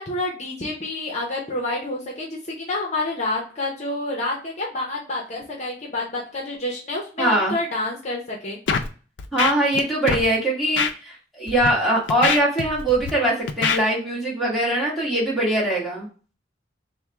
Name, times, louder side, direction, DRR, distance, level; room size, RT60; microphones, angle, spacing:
voice 1, 0.0-8.6, left 2 dB, 40° left, -1 dB, 0.8 m, -28 dB
voice 2, 7.2-7.5 9.3-16.1, right 1 dB, ahead, -6 dB, 1.3 m, -22 dB
Scratching (performance technique), 8.7-8.9 9.2-9.8 10.1-10.2 10.8-10.9 11.5-11.7 12.1-13.1 13.5-13.8, left 5 dB, 75° left, 0.5 m, -23 dB
3.5 x 2.2 x 4.3 m, 0.38 s
head